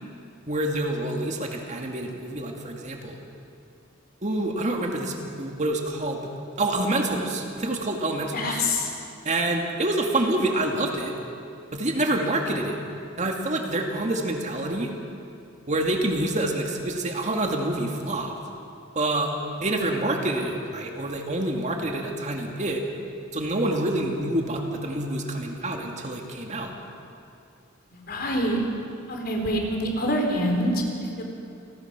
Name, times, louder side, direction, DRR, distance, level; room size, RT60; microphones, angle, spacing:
voice 1, 0.5-3.2 4.2-6.3 6.6-8.6 9.2-11.1 11.7-12.8 13.2-14.9 15.7-18.4 19.0-19.3 19.6-22.8 23.3-26.7, right 1 dB, 35° right, 2 dB, 2.2 m, -27 dB
voice 2, 8.3-8.9 28.1-28.6 29.1-31.2, equal, 50° left, 1 dB, 3.9 m, -25 dB
28.5 x 20.0 x 6.1 m, 2.6 s
head